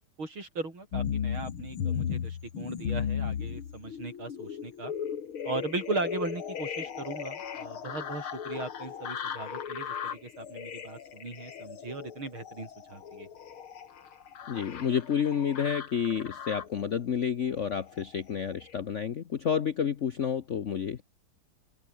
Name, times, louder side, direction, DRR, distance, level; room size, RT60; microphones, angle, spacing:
voice 1, 0.2-4.9 5.4-13.3, right 3 dB, 75° right, 6.9 m, -38 dB
sound 1, 0.9-16.8 17.5-18.1 18.6-18.7, left 8 dB, 85° left, 2.7 m, -36 dB
voice 2, 14.5-21.0, left 8 dB, 55° left, 0.8 m, -30 dB
open air
omnidirectional pair, 2.3 m